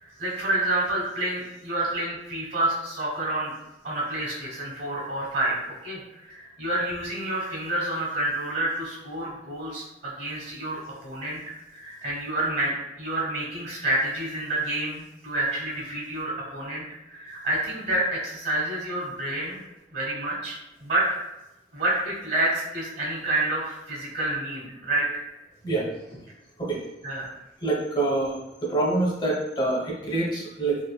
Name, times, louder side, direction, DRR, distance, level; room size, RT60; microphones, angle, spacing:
voice 1, 0.0-3.5 3.8-11.4 11.7-12.7 13.0-19.6 19.9-20.5 20.8-21.1 21.7-25.1 27.0-27.3, right 1 dB, 60° right, -4 dB, 1.1 m, -28 dB
voice 2, 27.6-30.8, right 2 dB, 25° left, -3 dB, 0.7 m, -26 dB
2.9 x 2.5 x 2.2 m, 0.94 s
head